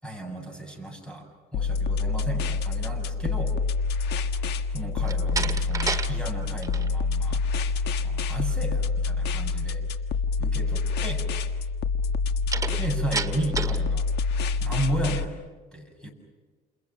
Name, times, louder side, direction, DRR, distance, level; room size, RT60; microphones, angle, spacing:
voice 1, 0.0-1.3 1.5-3.5 4.7-7.4 8.0-9.8 10.4-11.2 12.8-14.1 14.6-15.4 15.7-16.1, right 1 dB, 5° left, 4 dB, 7.6 m, -33 dB
sound 1, 1.5-15.2, left 4 dB, 80° left, 1.6 m, -27 dB
Slam, 5.0-6.1 6.4-6.9 12.5-13.9, right 4 dB, 20° right, 2.0 m, -30 dB
29.5 x 29.0 x 6.2 m, 1.4 s
cardioid pair, 110°, 17 cm